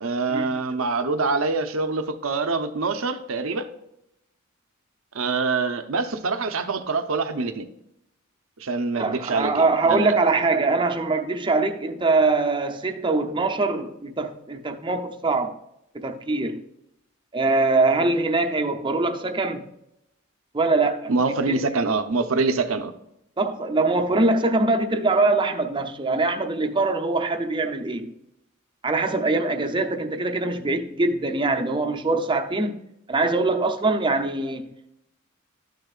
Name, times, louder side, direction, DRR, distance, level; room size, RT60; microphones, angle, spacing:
voice 1, 0.0-3.7 5.1-7.7 8.6-10.1 21.1-22.9, right 3 dB, 80° right, 0.8 m, -25 dB
voice 2, 8.9-15.6 15.9-16.6 17.3-19.6 20.5-21.1 21.5-21.6 23.4-28.1 28.8-32.8 33.1-34.9, right 3 dB, 25° right, 0.7 m, -23 dB
12.5 x 6.6 x 2.4 m
head